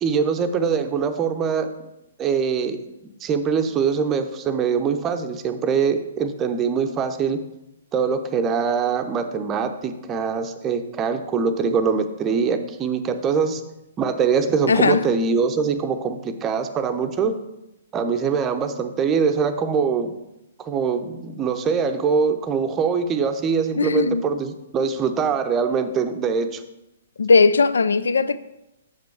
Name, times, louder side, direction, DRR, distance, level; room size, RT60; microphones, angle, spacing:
voice 1, 0.0-1.7 2.2-2.8 3.2-7.4 7.9-13.6 14.0-17.3 17.9-20.1 20.6-26.6, right 6 dB, 20° right, 0.6 m, -23 dB
voice 2, 14.7-15.0 23.8-24.3 27.2-28.4, left 4 dB, 75° left, 0.3 m, -18 dB
7.5 x 5.2 x 4.6 m
figure-of-eight pair, 125°, 0 cm